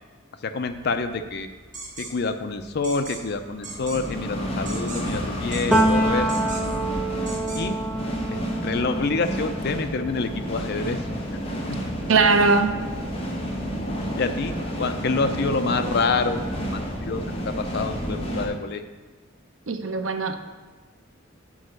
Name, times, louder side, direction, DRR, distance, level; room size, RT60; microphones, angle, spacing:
voice 1, 0.4-1.5 2.0-6.3 7.5-7.7 8.3-11.0 11.7-11.8 14.2-18.8, left 4 dB, 55° left, 8 dB, 0.5 m, -27 dB
sound 1, 1.7-2.1 2.8-3.2 3.6-4.0 4.7-5.2 5.5-5.9 6.3-6.8 7.3-7.6, right 3 dB, 40° right, 1.3 m, -38 dB
sound 2, 2.6-18.5, equal, 30° left, 1.1 m, -30 dB
Piano, 5.7-13.3 13.7-15.2, right 1 dB, 5° right, 0.9 m, -28 dB
voice 2, 12.1-12.7 19.7-20.4, right 4 dB, 80° right, 8 dB, 0.6 m, -20 dB
6.3 x 4.7 x 6.4 m, 1.3 s
head